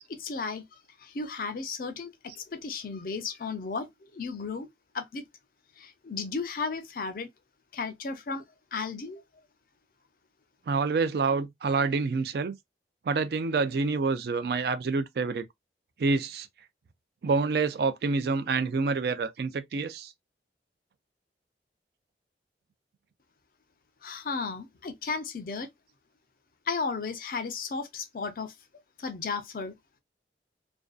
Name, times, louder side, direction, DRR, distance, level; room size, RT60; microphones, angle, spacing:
voice 1, 0.1-4.7 4.9-5.2 5.8-7.3 7.7-8.4 8.7-9.2 24.0-25.7 26.7-28.5 29.0-29.7, left 4 dB, 50° left, 0.5 m, -34 dB
voice 2, 10.7-12.6 13.1-15.5 16.0-16.5 17.2-20.1, right 4 dB, 60° right, 0.3 m, -27 dB
2.5 x 2.2 x 2.3 m
head